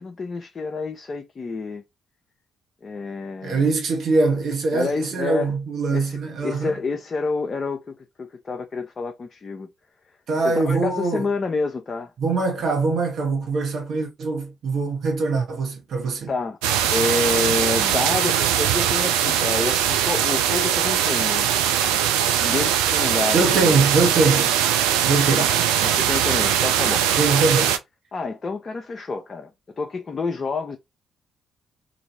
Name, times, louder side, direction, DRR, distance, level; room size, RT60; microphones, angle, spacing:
voice 1, 0.0-1.8 2.8-3.7 4.7-5.5 5.9-9.7 10.4-12.1 16.3-16.6 16.9-21.5 22.4-23.8 25.4-25.5 25.8-27.5 28.1-30.8, left 4 dB, 40° left, 0.6 m, -28 dB
voice 2, 3.4-6.8 10.3-11.3 12.2-16.3 23.3-24.6 25.0-25.5 27.2-27.8, right 3 dB, 55° right, 1.1 m, -22 dB
sound 1, 16.6-27.8, right 9 dB, 75° right, 0.4 m, -21 dB
3.0 x 2.6 x 2.7 m
figure-of-eight pair, 40°, 0 cm